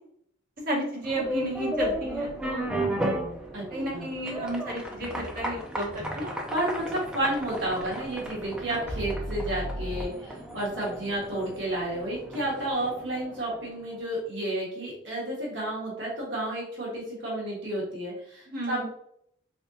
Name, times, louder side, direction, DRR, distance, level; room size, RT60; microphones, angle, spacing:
voice 1, 0.6-2.7 3.7-6.3 18.5-18.8, right 1 dB, 45° right, -4 dB, 1.3 m, -32 dB
sound 1, 1.0-13.8, equal, 5° right, 0.5 m, -35 dB
sound 2, 1.8-10.1, equal, 30° left, 1.0 m, -41 dB
voice 2, 6.5-18.8, right 1 dB, 70° right, -4 dB, 1.4 m, -31 dB
3.6 x 3.3 x 2.7 m, 0.71 s
head